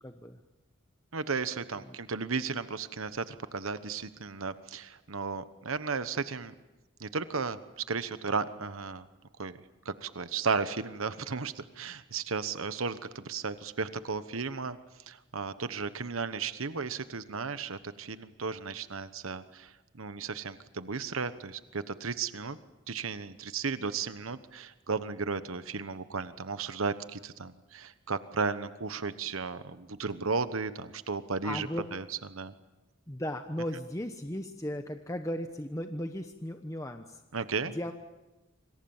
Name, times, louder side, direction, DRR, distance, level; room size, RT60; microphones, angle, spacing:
voice 1, 0.0-0.4 31.4-31.8 33.1-37.2 37.6-37.9, equal, 15° left, 6 dB, 1.0 m, -36 dB
voice 2, 1.1-6.5 7.0-7.6 7.9-9.0 9.4-9.6 9.8-14.8 15.1-22.6 22.9-32.0 32.3-32.5 37.3-37.7, right 4 dB, 85° right, 12 dB, 1.1 m, -34 dB
27.0 x 26.0 x 7.3 m, 1.1 s
head